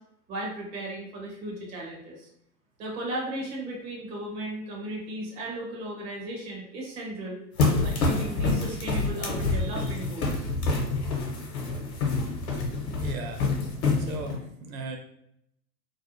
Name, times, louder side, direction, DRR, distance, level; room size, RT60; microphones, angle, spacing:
voice 1, 0.3-2.3 2.8-7.4 7.7-10.5, right 1 dB, 15° right, -2 dB, 0.4 m, -36 dB
sound 1, 7.6-14.4, left 3 dB, 60° left, 0.9 m, -27 dB
voice 2, 13.0-13.5 14.0-15.0, right 3 dB, 55° right, 4 dB, 0.6 m, -37 dB
2.5 x 2.1 x 2.8 m, 0.75 s
figure-of-eight pair, 100°, 49 cm